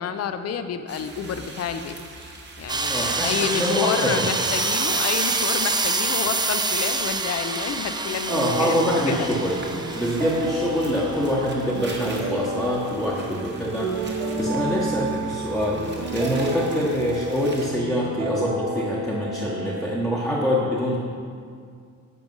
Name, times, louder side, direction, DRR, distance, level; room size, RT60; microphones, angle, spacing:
voice 1, 0.0-2.0 2.6-9.3, left 7 dB, 55° left, 9 dB, 0.7 m, -29 dB
sound 1, 0.9-17.7, right 2 dB, 35° right, 1.5 m, -41 dB
sound 2, 2.7-11.3, right 3 dB, 15° right, 0.5 m, -26 dB
voice 2, 2.9-4.3 8.3-9.6 9.9-13.9 14.4-21.0, equal, ahead, -6 dB, 1.1 m, -25 dB
sound 3, 8.3-19.9, right 1 dB, 85° right, 2.2 m, -30 dB
11.0 x 6.9 x 5.5 m, 2.2 s
cardioid pair, 150°, 30 cm